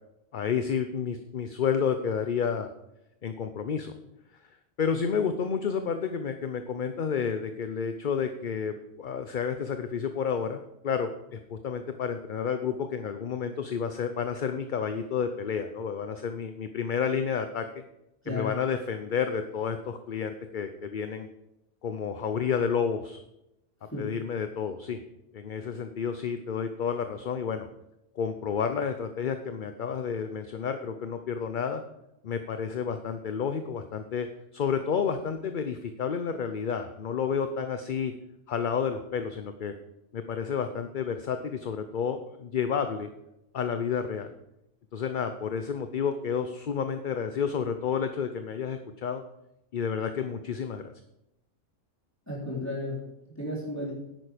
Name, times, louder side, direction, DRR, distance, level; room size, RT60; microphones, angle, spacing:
voice 1, 0.3-2.7 3.2-3.9 4.8-17.7 18.3-21.3 21.8-23.2 24.0-25.0 25.3-27.7 28.2-31.8 32.2-34.3 34.5-38.1 38.5-39.7 40.1-43.1 43.5-44.3 44.9-49.2 49.7-50.8, left 6 dB, 50° left, 8 dB, 0.8 m, -30 dB
voice 2, 18.2-18.6 23.8-24.2 52.3-53.9, left 1 dB, 15° left, -6 dB, 3.6 m, -34 dB
10.5 x 9.0 x 5.1 m, 0.85 s
omnidirectional pair, 1.2 m